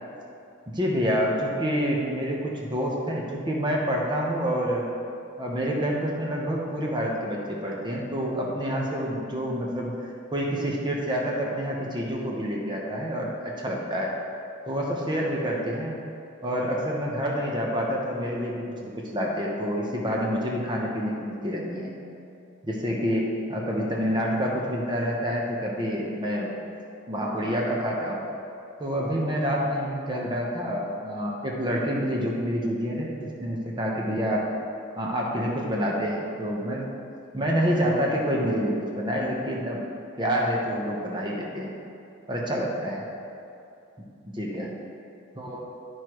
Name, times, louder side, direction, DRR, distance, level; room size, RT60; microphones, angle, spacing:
voice 1, 0.7-4.9 5.4-9.9 10.3-14.1 14.7-16.0 16.4-21.9 22.6-26.6 27.1-28.2 28.8-33.1 33.4-34.5 35.0-36.8 37.3-39.8 40.2-41.7 42.3-43.0 44.2-44.7 45.3-45.7, equal, 20° right, -2 dB, 0.9 m, -27 dB
12.5 x 4.7 x 3.0 m, 2.6 s
head